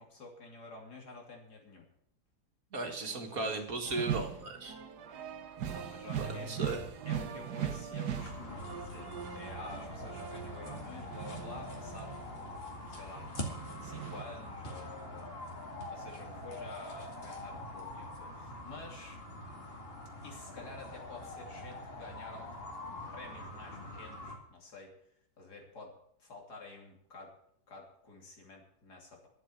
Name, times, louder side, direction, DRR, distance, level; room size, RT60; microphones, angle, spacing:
voice 1, 0.0-1.9 3.0-3.6 5.7-6.5 7.0-13.3 13.8-15.4 15.9-19.2 20.2-22.5 23.1-24.9 25.4-27.3 27.7-29.3, left 3 dB, 75° left, 1 dB, 3.5 m, -50 dB
voice 2, 2.7-4.8 6.2-6.9, right 3 dB, 60° right, 4 dB, 2.1 m, -36 dB
sound 1, 3.9-12.6 13.0-14.2, right 8 dB, 80° right, 1.6 m, -40 dB
sound 2, 8.1-24.4, left 1 dB, 35° left, 2.3 m, -44 dB
11.5 x 7.8 x 8.7 m, 0.69 s
omnidirectional pair, 1.7 m